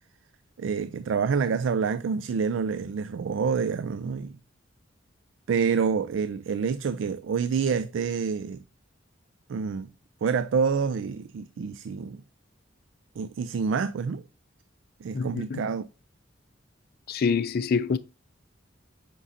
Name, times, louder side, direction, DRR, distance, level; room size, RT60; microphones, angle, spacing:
voice 1, 0.6-4.4 5.5-8.6 9.5-9.9 10.2-12.2 13.2-14.2 15.0-15.8, right 6 dB, 70° right, 0.3 m, -27 dB
voice 2, 15.1-15.6 17.1-18.0, left 5 dB, 50° left, 0.4 m, -26 dB
7.4 x 5.3 x 2.7 m
head